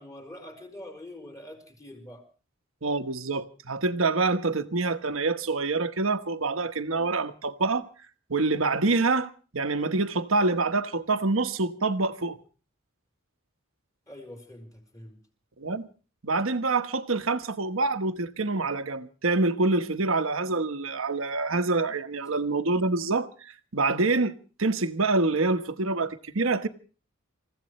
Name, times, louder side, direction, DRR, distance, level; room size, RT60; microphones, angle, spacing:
voice 1, 0.0-2.2 14.1-15.2, left 1 dB, 15° left, 4.5 m, -44 dB
voice 2, 2.8-7.9 8.3-12.4 15.6-15.9 16.2-26.7, right 3 dB, 75° right, 1.2 m, -26 dB
28.5 x 16.0 x 3.2 m
head